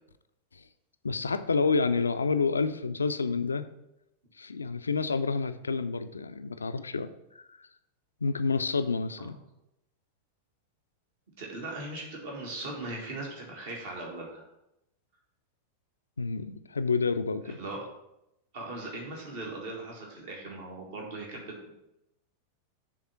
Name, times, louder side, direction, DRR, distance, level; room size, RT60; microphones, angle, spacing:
voice 1, 1.0-3.6 4.4-7.1 8.2-9.4 16.2-17.6, left 4 dB, 75° left, 11 dB, 0.4 m, -28 dB
voice 2, 11.4-14.4 17.5-17.9 18.5-21.7, right 2 dB, 55° right, -1 dB, 1.8 m, -39 dB
7.3 x 3.6 x 5.7 m, 0.87 s
figure-of-eight pair, 90°, 0 cm